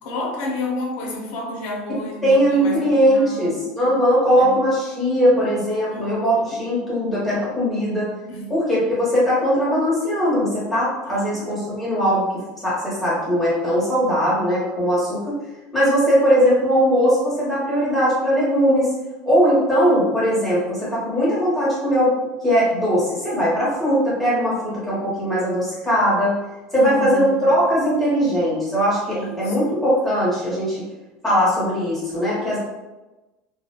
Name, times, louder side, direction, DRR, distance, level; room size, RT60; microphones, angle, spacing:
voice 1, 0.0-3.6 4.3-4.5 5.9-6.6 8.3-8.5 11.0-11.5 26.7-27.5 29.1-29.8, left 1 dB, 55° left, 0 dB, 0.7 m, -31 dB
voice 2, 2.2-8.1 8.5-12.2 12.6-15.3 15.7-18.9 19.2-22.1 22.4-26.3 26.7-30.8 31.2-32.6, equal, 5° left, -9 dB, 1.0 m, -20 dB
2.3 x 2.2 x 2.8 m, 1.1 s
cardioid pair, 160°, 3 cm